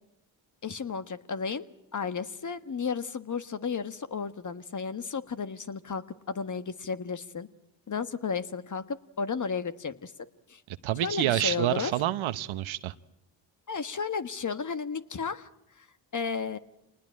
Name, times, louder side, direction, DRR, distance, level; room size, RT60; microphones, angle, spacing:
voice 1, 0.6-1.7 1.9-7.5 7.9-10.1 10.5-10.6 11.0-11.9 13.7-15.5 15.8-15.9 16.1-16.6, left 5 dB, 35° left, 11 dB, 1.5 m, -33 dB
voice 2, 10.8-12.9, right 14 dB, 70° right, 13 dB, 1.0 m, -28 dB
27.5 x 19.5 x 8.9 m, 0.85 s
supercardioid pair, 65°, 49 cm